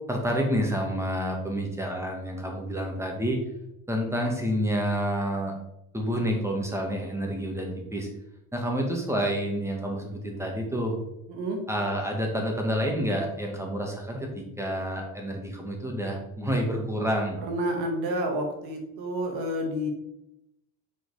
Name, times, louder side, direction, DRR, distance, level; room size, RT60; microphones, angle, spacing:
voice 1, 0.1-3.4 3.9-5.5 5.9-8.1 8.5-10.9 11.7-17.4, equal, 5° right, 1 dB, 1.9 m, -29 dB
voice 2, 11.3-11.6 17.4-19.9, equal, 85° right, 2 dB, 2.1 m, -29 dB
6.8 x 4.9 x 4.9 m, 0.84 s
cardioid pair, 120°, 37 cm